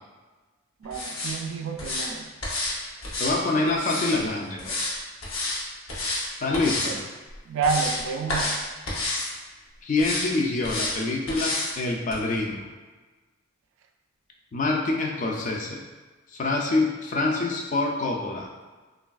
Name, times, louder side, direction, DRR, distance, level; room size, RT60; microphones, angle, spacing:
voice 1, 0.8-2.3 6.8-7.0 7.5-8.6, right 5 dB, 80° right, 4 dB, 0.3 m, -29 dB
sound 1, 0.9-1.4 1.8-2.1 2.4-2.7 3.0-4.2 4.6-4.9 5.2-5.6 5.9-6.2 6.5-6.9 7.3-8.0 8.3-8.6 8.9-9.3 10.0-10.3 10.6-10.9 11.3-11.7 12.1-12.2, left 2 dB, 90° left, 0.8 m, -29 dB
voice 2, 3.2-4.9 6.4-7.0 9.8-12.7 14.5-15.8 16.3-18.5, left 2 dB, 40° left, 0 dB, 0.3 m, -26 dB
3.2 x 2.3 x 2.3 m, 1.3 s
head